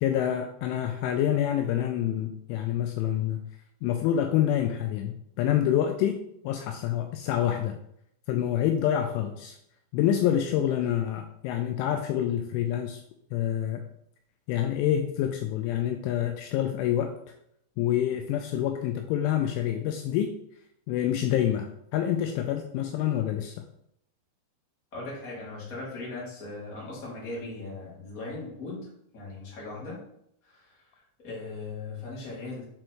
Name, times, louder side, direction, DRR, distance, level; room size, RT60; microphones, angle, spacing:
voice 1, 0.0-3.4 3.8-7.8 8.3-9.6 9.9-13.0 13.3-13.8 14.5-17.1 17.8-20.3 20.9-23.6, left 10 dB, 85° left, 5 dB, 2.8 m, -27 dB
voice 2, 24.9-30.0 30.4-30.8 31.2-32.6, left 3 dB, 35° left, -6 dB, 1.4 m, -38 dB
7.6 x 3.1 x 4.4 m, 0.73 s
omnidirectional pair, 5.8 m